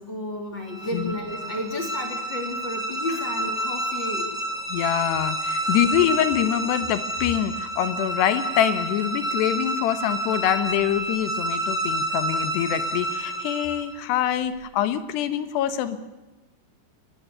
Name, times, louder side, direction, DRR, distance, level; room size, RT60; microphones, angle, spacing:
voice 1, 0.0-4.3 5.6-5.8, left 1 dB, 30° left, 4 dB, 2.6 m, -32 dB
sound 1, 0.6-14.0, right 1 dB, ahead, 3.2 m, -29 dB
voice 2, 4.7-16.0, left 10 dB, 85° left, 12 dB, 3.4 m, -25 dB
22.5 x 19.0 x 8.2 m, 1.1 s
omnidirectional pair, 4.7 m